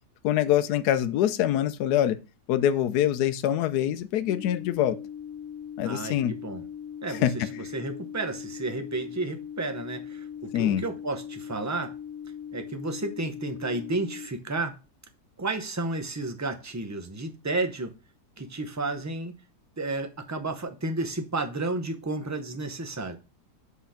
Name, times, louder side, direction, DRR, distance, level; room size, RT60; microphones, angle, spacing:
voice 1, 0.2-2.2 2.5-5.0 5.8-6.3 7.1-7.3 10.5-10.8, left 11 dB, 75° left, 1.1 m, -24 dB
sound 1, 4.3-14.3, left 8 dB, 50° left, 2.3 m, -40 dB
voice 2, 5.8-6.6 7.0-11.9 12.5-14.8 15.4-17.9 18.4-19.4 19.8-23.2, right 2 dB, 15° right, 0.6 m, -32 dB
7.8 x 4.2 x 5.7 m
omnidirectional pair, 1.8 m